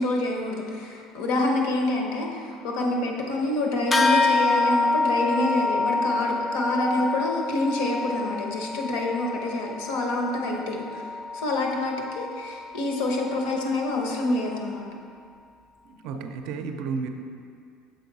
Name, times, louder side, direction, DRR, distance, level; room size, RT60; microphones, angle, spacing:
voice 1, 0.0-11.1 11.3-14.9, left 2 dB, 70° left, 1 dB, 0.9 m, -27 dB
sound 1, 3.9-13.7, left 3 dB, 10° left, 0.3 m, -27 dB
voice 2, 15.8-17.1, right 5 dB, 55° right, 6 dB, 0.4 m, -32 dB
6.5 x 4.5 x 4.0 m, 2.3 s
cardioid pair, 180°, 0 cm